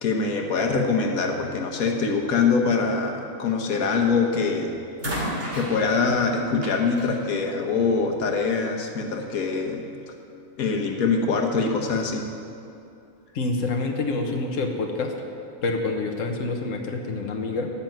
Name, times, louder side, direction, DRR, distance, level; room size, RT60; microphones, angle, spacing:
voice 1, 0.0-4.7 5.5-9.8 10.6-12.3, left 4 dB, 90° left, 2 dB, 1.6 m, -24 dB
sound 1, 4.1-4.4 5.0-8.3 9.3-9.4, equal, 45° right, 3.0 m, -34 dB
voice 2, 13.3-15.1 15.6-17.7, left 3 dB, 65° left, 2 dB, 1.4 m, -27 dB
14.0 x 6.0 x 9.2 m, 2.6 s
omnidirectional pair, 1.4 m